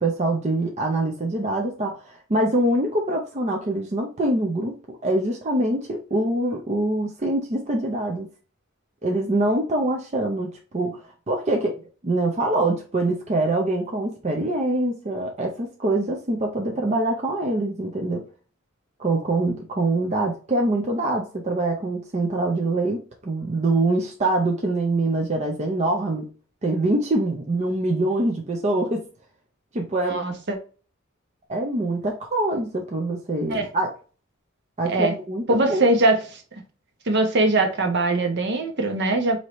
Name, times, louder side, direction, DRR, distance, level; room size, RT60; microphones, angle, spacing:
voice 1, 0.0-8.3 9.0-18.2 19.0-26.3 26.6-29.0 29.7-30.3 31.5-33.9 34.8-35.4 35.7-35.8, right 2 dB, 35° right, 0.6 m, -24 dB
voice 2, 30.0-30.6 33.5-33.7 34.9-35.1 35.5-36.4 37.1-39.4, right 2 dB, 55° right, 0.9 m, -21 dB
4.6 x 2.8 x 3.1 m
head